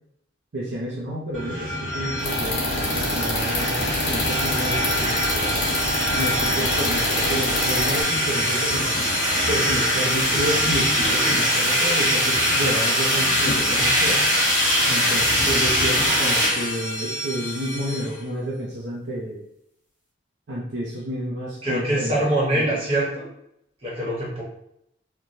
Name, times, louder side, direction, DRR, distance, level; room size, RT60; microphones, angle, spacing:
voice 1, 0.5-5.7 6.1-8.9 9.5-14.2 14.9-19.4 20.5-22.2 22.5-22.8, right 1 dB, 65° right, -4 dB, 0.5 m, -30 dB
sound 1, 1.3-18.1, equal, 5° left, 1.1 m, -23 dB
sound 2, 2.2-8.0, left 1 dB, 60° left, 1.0 m, -27 dB
voice 2, 14.8-15.3 21.6-23.2 23.8-24.4, right 1 dB, 30° right, -6 dB, 1.0 m, -24 dB
3.1 x 2.2 x 2.6 m, 0.74 s
head